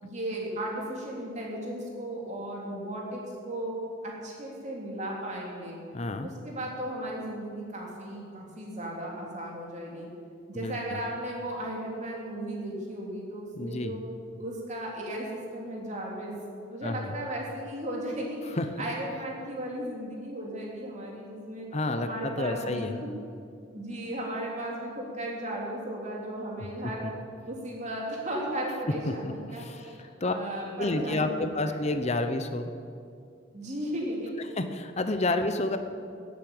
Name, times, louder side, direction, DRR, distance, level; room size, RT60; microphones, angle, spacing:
voice 1, 0.0-5.8 6.2-10.1 10.5-14.0 14.4-16.3 16.7-21.7 22.0-23.1 23.7-27.1 27.5-31.9 33.5-34.3, right 1 dB, 35° right, -2 dB, 3.1 m, -36 dB
voice 2, 5.9-6.3 10.5-11.0 13.6-13.9 16.8-17.1 18.5-18.7 21.7-23.0 29.1-29.2 29.5-30.3 30.8-32.7 34.5-35.8, left 2 dB, 35° left, 8 dB, 0.8 m, -30 dB
14.0 x 8.5 x 8.9 m, 2.4 s
head